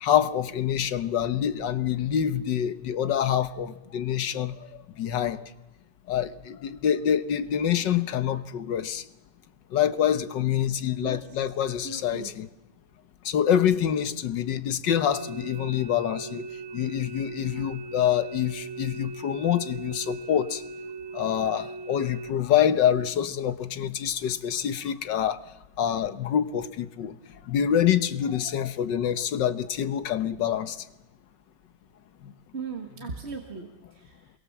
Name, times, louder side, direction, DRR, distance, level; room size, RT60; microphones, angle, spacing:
voice 1, 0.0-4.7 5.0-5.4 6.1-9.1 9.7-12.5 13.3-16.5 16.7-20.6 21.1-25.4 25.8-27.2 27.5-30.8 32.2-32.3, left 9 dB, 85° left, 12 dB, 1.8 m, -26 dB
voice 2, 11.0-11.5 11.8-12.3 32.5-34.3, right 4 dB, 40° right, 3 dB, 1.9 m, -38 dB
sound 1, 15.1-22.3, right 4 dB, 55° right, 2.0 m, -39 dB
27.5 x 22.5 x 7.3 m, 1.0 s
omnidirectional pair, 1.9 m